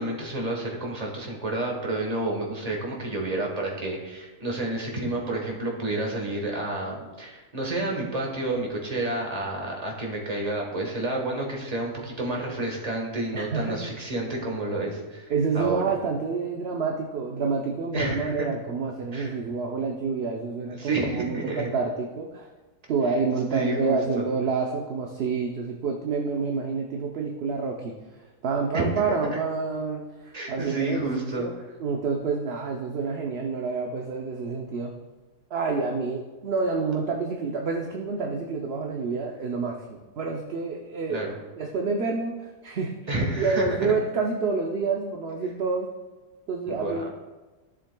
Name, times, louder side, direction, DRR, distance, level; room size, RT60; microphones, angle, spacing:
voice 1, 0.0-15.8 17.9-18.5 19.1-19.3 20.8-21.7 23.5-24.3 28.7-28.9 30.3-31.5 41.1-41.3 43.1-43.9 46.7-47.0, right 2 dB, 30° right, 0 dB, 1.4 m, -30 dB
voice 2, 13.3-13.8 15.3-22.5 22.9-27.9 28.4-31.5 31.8-34.9 35.5-41.3 41.6-43.0 43.3-45.9 46.5-47.1, right 4 dB, 55° right, 1 dB, 0.8 m, -28 dB
14.0 x 7.3 x 2.3 m, 1.2 s
omnidirectional pair, 1.5 m